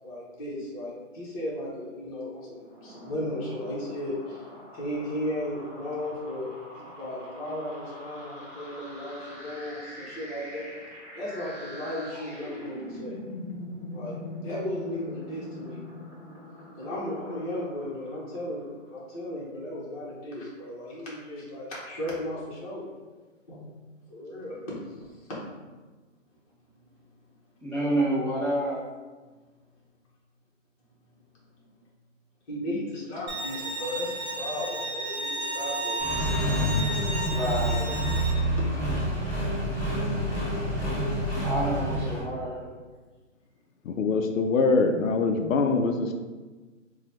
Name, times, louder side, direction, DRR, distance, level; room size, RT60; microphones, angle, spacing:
voice 1, 0.0-4.4 4.7-10.7 11.1-13.2 13.9-15.8 16.8-22.9 23.5-23.6 24.1-25.4 32.5-36.3 38.6-38.8, left 1 dB, 25° left, -6 dB, 1.0 m, -35 dB
sound 1, 2.5-18.9, left 1 dB, 25° right, 1.1 m, -43 dB
voice 2, 27.6-28.8 37.2-37.9 41.4-42.6, right 1 dB, 10° right, -19 dB, 0.4 m, -28 dB
Bowed string instrument, 33.3-38.3, right 1 dB, 55° right, 0.8 m, -33 dB
Accelerating revving vroom, 36.0-42.2, equal, 10° left, 1.4 m, -27 dB
voice 3, 43.9-46.1, left 4 dB, 80° left, 5 dB, 0.5 m, -23 dB
3.0 x 2.3 x 4.1 m, 1.3 s
hypercardioid pair, 155°, 39 cm